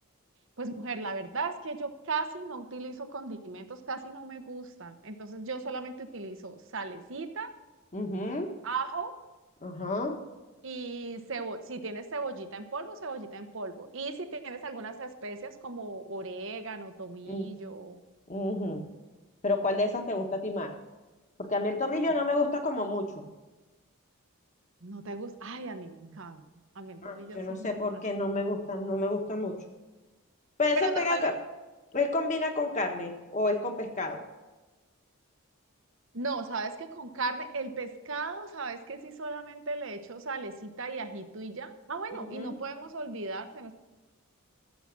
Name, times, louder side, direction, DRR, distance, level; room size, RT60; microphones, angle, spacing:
voice 1, 0.6-7.5 8.6-9.2 10.6-18.0 24.8-26.4 26.7-27.8 30.7-31.3 36.1-43.7, right 3 dB, 60° right, 8 dB, 1.0 m, -37 dB
voice 2, 7.9-8.5 9.6-10.1 17.2-17.5 18.3-18.8 19.4-20.7 21.4-23.1 26.0-26.1 27.0-29.6 30.6-31.3 31.9-34.2 42.1-42.6, left 2 dB, 35° left, 4 dB, 1.5 m, -30 dB
14.0 x 7.5 x 6.0 m, 1.2 s
head